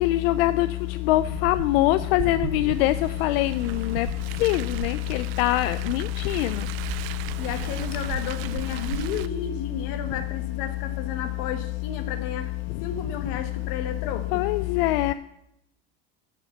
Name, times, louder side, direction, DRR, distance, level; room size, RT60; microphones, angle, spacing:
voice 1, 0.0-0.7 1.1-2.9 3.2-4.1 4.4-6.5 14.3-15.1, left 16 dB, 85° left, 12 dB, 0.5 m, -23 dB
Car, 1.1-9.3, right 14 dB, 70° right, 0.6 m, -37 dB
voice 2, 7.4-12.5 12.8-14.4, left 7 dB, 60° left, 8 dB, 1.5 m, -33 dB
12.0 x 6.0 x 7.2 m, 0.81 s
cardioid pair, 170°, 29 cm